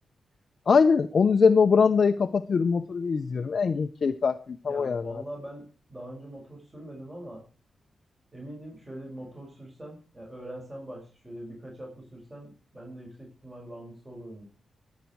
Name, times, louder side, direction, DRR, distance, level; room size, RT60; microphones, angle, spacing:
voice 1, 0.7-5.2, left 5 dB, 60° left, 7 dB, 0.6 m, -22 dB
voice 2, 4.6-7.4 8.3-14.4, right 1 dB, 15° right, -1 dB, 6.0 m, -43 dB
21.5 x 8.3 x 4.6 m, 0.36 s
cardioid pair, 70°, 0 cm